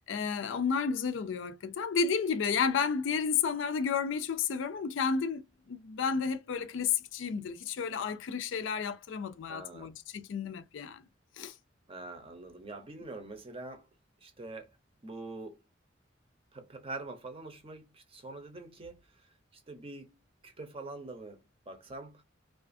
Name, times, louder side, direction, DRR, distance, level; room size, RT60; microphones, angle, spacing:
voice 1, 0.1-11.0 11.4-11.5, left 6 dB, 70° left, 0.4 m, -32 dB
voice 2, 9.5-9.9 11.9-13.8 14.2-14.7 15.0-15.6 16.5-19.0 19.7-20.1 20.4-21.4 21.7-22.2, right 2 dB, 30° right, 0.6 m, -44 dB
2.4 x 2.3 x 2.5 m
head